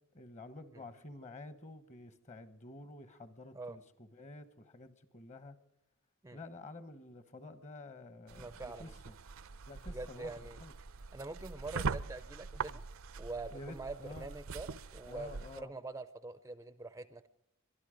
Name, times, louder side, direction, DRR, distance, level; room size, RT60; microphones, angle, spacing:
voice 1, 0.1-5.6 6.3-9.1 9.7-10.3 10.6-10.7 12.7-12.8 13.5-14.3 15.1-15.7, left 2 dB, 35° left, 13 dB, 1.1 m, -50 dB
voice 2, 8.3-9.0 9.8-10.6 11.1-12.8 13.2-17.3, right 3 dB, 15° right, 13 dB, 0.5 m, -45 dB
sound 1, 8.3-15.6, right 5 dB, 65° right, 0.6 m, -43 dB
22.5 x 12.5 x 5.1 m, 0.81 s
head